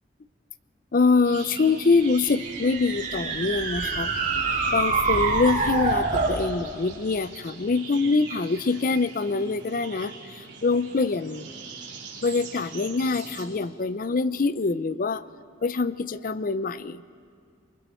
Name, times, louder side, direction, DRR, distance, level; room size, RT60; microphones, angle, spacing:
voice 1, 0.9-4.1 4.7-11.5 12.2-15.2 15.6-17.0, left 4 dB, 50° left, 15 dB, 0.5 m, -24 dB
sound 1, 1.2-13.4, right 5 dB, 70° right, 3.8 m, -42 dB
sound 2, 2.0-6.4, right 4 dB, 45° right, 2.1 m, -26 dB
27.5 x 23.0 x 4.4 m, 2.1 s
head